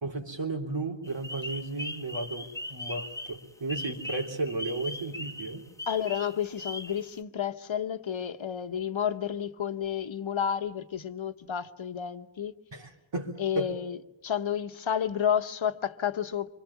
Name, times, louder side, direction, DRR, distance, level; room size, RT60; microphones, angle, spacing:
voice 1, 0.0-5.7 12.7-13.7, right 2 dB, 65° right, 3.6 m, -34 dB
sound 1, 1.0-7.2, left 1 dB, 5° left, 1.4 m, -39 dB
voice 2, 5.9-12.5 13.4-14.0 14.2-16.5, left 8 dB, 70° left, 1.2 m, -31 dB
26.5 x 24.5 x 7.2 m
wide cardioid pair, 75°, 48 cm